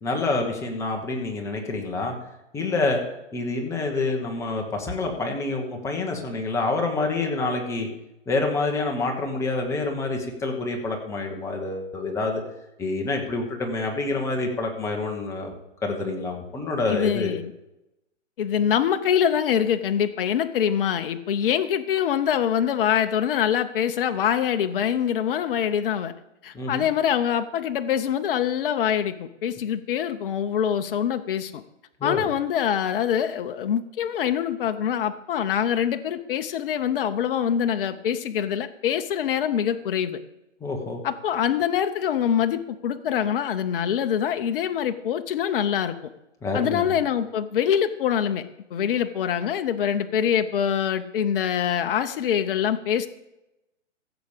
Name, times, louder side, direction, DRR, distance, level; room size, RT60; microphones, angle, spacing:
voice 1, 0.0-2.1 2.5-3.0 3.3-7.9 8.3-12.4 12.8-15.5 15.8-17.3 26.5-26.9 32.0-32.3 40.6-41.0 46.4-47.0, left 3 dB, 5° left, 1 dB, 1.1 m, -27 dB
voice 2, 16.9-17.5 18.4-26.1 26.4-31.6 32.0-40.2 41.0-46.1 46.5-48.5 48.7-53.1, left 9 dB, 45° left, 9 dB, 0.8 m, -24 dB
15.5 x 7.0 x 5.1 m, 0.91 s
hypercardioid pair, 145°, 38 cm